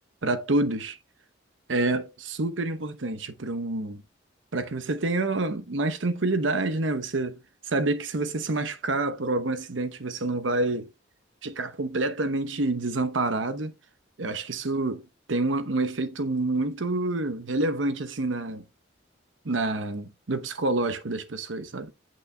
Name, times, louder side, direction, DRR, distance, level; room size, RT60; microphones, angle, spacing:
voice 1, 0.2-1.0 1.7-4.0 4.5-10.9 11.4-13.7 14.2-15.0 15.3-18.6 19.4-21.9, right 2 dB, 80° right, 0.9 m, -28 dB
8.4 x 6.2 x 2.2 m
head